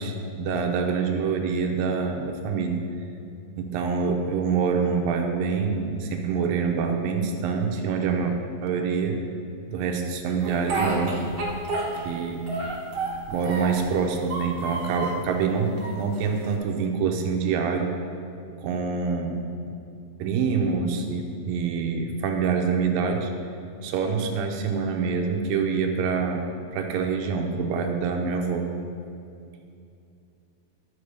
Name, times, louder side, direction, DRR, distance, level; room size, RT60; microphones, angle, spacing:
voice 1, 0.0-2.8 3.6-8.4 8.6-9.2 9.7-11.2 12.0-12.5 13.3-17.9 18.6-19.3 19.7-19.8 20.2-23.3 23.8-26.5 26.7-28.7, right 5 dB, 80° right, 3 dB, 2.4 m, -26 dB
Speech, 10.4-12.2 12.5-13.9 14.2-15.2 15.8-16.5, right 3 dB, 55° right, 1.4 m, -30 dB
13.0 x 4.5 x 6.5 m, 2.5 s
omnidirectional pair, 4.4 m